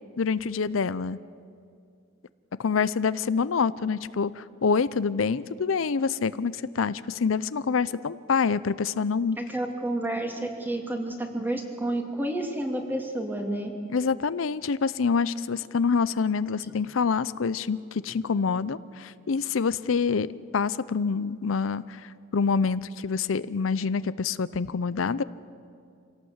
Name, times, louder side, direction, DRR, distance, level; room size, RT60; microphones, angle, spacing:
voice 1, 0.2-1.2 2.6-9.4 13.9-25.2, left 5 dB, 85° left, 16 dB, 0.6 m, -26 dB
voice 2, 9.4-13.7 16.7-16.8, right 1 dB, 10° right, 2 dB, 2.6 m, -30 dB
26.0 x 17.5 x 8.0 m, 2.4 s
head